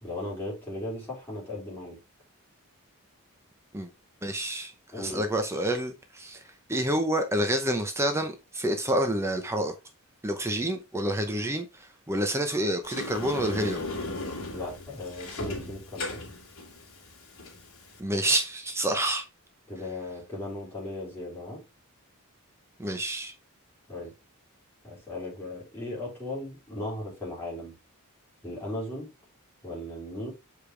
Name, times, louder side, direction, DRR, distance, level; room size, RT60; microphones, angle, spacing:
voice 1, 0.0-2.0 4.9-5.3 14.5-16.2 19.7-21.6 23.9-24.1 24.8-27.7 28.4-29.1 29.6-30.3, left 1 dB, 10° left, 4.1 m, -37 dB
voice 2, 4.2-6.4 6.7-9.7 10.2-13.8 18.0-19.2 22.8-23.3, right 1 dB, 10° right, 0.7 m, -28 dB
Sliding door, 12.8-18.0, left 2 dB, 70° left, 2.6 m, -36 dB
6.6 x 5.0 x 3.4 m
head